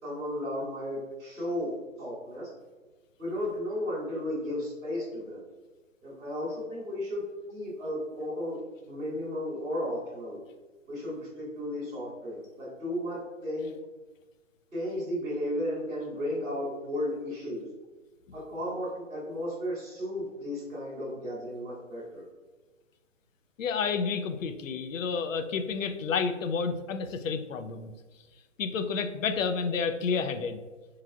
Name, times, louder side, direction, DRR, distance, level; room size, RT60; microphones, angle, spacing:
voice 1, 0.0-2.5 3.2-5.4 6.0-7.2 7.5-8.6 8.8-10.4 10.9-13.7 14.7-17.6 18.3-22.2, left 1 dB, ahead, -30 dB, 0.3 m, -34 dB
voice 2, 23.6-27.9 28.6-30.6, left 5 dB, 75° left, 8 dB, 0.5 m, -30 dB
3.7 x 3.1 x 2.3 m, 1.2 s
hypercardioid pair, 140°, 39 cm